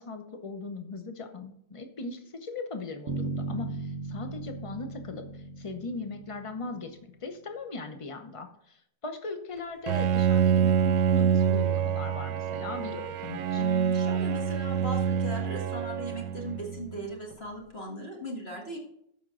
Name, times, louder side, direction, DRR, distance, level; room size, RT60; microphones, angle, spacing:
voice 1, 0.0-13.6, left 3 dB, 55° left, 6 dB, 0.3 m, -39 dB
Bass guitar, 3.1-7.1, right 3 dB, 55° right, 0.9 m, -37 dB
Bowed string instrument, 9.9-17.0, right 8 dB, 75° right, 1.2 m, -26 dB
voice 2, 13.6-18.8, right 1 dB, 35° left, 0 dB, 1.9 m, -38 dB
13.0 x 5.4 x 3.8 m, 0.73 s
omnidirectional pair, 2.0 m